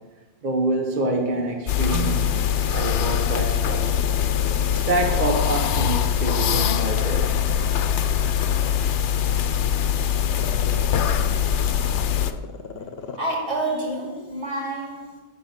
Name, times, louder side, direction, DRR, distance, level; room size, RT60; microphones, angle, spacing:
voice 1, 0.4-3.9 4.7-7.4 10.5-10.7, right 2 dB, 45° right, 3 dB, 1.0 m, -27 dB
Growling, 0.8-2.6 3.0-6.0 6.4-13.3 13.6-13.7, left 5 dB, 65° left, 1.0 m, -38 dB
sound 1, 1.7-12.3, left 9 dB, 90° left, 0.9 m, -22 dB
sound 2, 1.9-5.9 6.3-6.6 7.2-7.5, right 5 dB, 15° right, 0.8 m, -39 dB
voice 2, 13.1-15.2, right 2 dB, 80° right, -3 dB, 2.7 m, -28 dB
11.0 x 4.2 x 7.2 m, 1.3 s
omnidirectional pair, 1.1 m